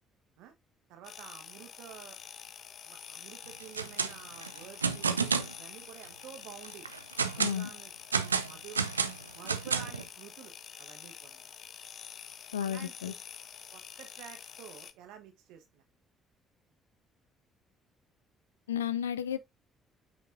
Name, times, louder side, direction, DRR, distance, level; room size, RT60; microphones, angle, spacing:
voice 1, 0.9-2.2 2.8-5.1 5.6-6.9 7.3-7.9 8.2-8.8 9.3-11.5 12.6-13.1 13.7-15.8, right 9 dB, 65° right, 1.1 m, -50 dB
sound 1, 1.0-14.9, left 8 dB, 50° left, 0.7 m, -48 dB
sound 2, 3.6-4.1 4.4-5.5 6.0-6.1 6.6-7.6 8.1-10.0, right 5 dB, 85° right, 0.4 m, -30 dB
voice 2, 7.4-7.7 12.5-13.1 18.7-19.4, left 9 dB, 80° left, 0.4 m, -33 dB
8.4 x 5.3 x 2.5 m
figure-of-eight pair, 50°, 0 cm